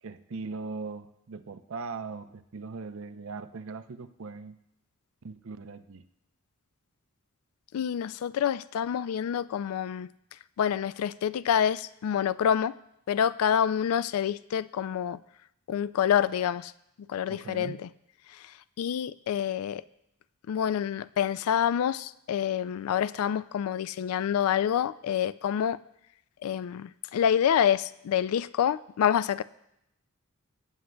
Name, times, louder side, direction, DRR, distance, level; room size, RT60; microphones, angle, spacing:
voice 1, 0.0-4.6 5.2-6.0 17.3-17.8, right 4 dB, 65° right, 9 dB, 0.5 m, -40 dB
voice 2, 7.7-10.1 10.6-12.7 13.1-15.2 15.7-16.7 17.1-17.9 18.3-19.8 20.5-25.8 26.4-29.4, left 9 dB, 80° left, 18 dB, 0.3 m, -27 dB
17.0 x 9.3 x 2.2 m, 0.80 s
head